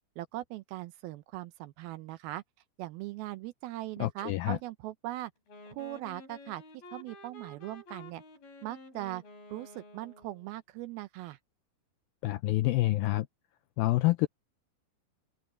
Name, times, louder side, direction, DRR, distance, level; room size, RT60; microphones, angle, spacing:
voice 1, 0.2-2.4 2.8-5.3 5.7-6.6 6.9-8.2 8.6-9.2 9.5-11.4, right 16 dB, 80° right, 2.3 m, -40 dB
voice 2, 4.0-4.6 12.2-13.3 13.8-14.3, left 17 dB, 90° left, 2.1 m, -27 dB
Wind instrument woodwind instrument, 5.5-10.5, left 1 dB, 65° left, 5.5 m, -51 dB
omnidirectional pair, 4.8 m